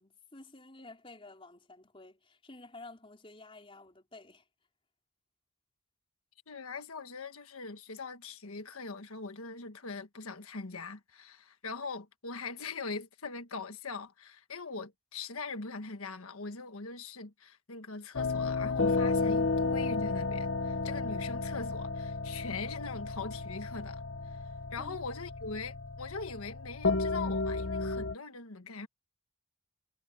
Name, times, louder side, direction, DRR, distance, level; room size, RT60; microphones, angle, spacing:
voice 1, 0.0-4.5 24.8-25.0, left 2 dB, 25° left, 4.5 m, -51 dB
voice 2, 6.5-28.9, left 4 dB, 90° left, 1.5 m, -41 dB
sound 1, 18.1-28.1, left 3 dB, 60° left, 0.8 m, -32 dB
head